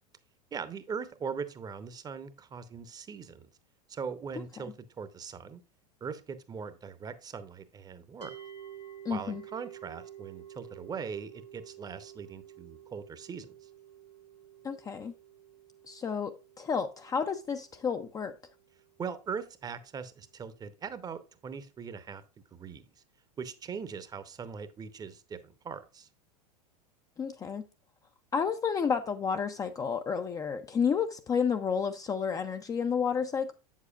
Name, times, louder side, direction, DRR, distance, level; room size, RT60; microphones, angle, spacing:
voice 1, 0.5-3.5 3.9-5.6 6.0-8.3 9.1-13.5 19.0-22.2 22.5-22.9 23.4-26.1, right 6 dB, 20° right, 0.7 m, -40 dB
sound 1, 8.2-19.4, right 10 dB, 80° left, 1.2 m, -51 dB
voice 2, 9.0-9.4 14.6-15.1 15.9-18.3 27.2-27.6 28.3-33.5, left 6 dB, 15° left, 0.4 m, -31 dB
8.0 x 7.3 x 2.3 m
figure-of-eight pair, 85°, 20 cm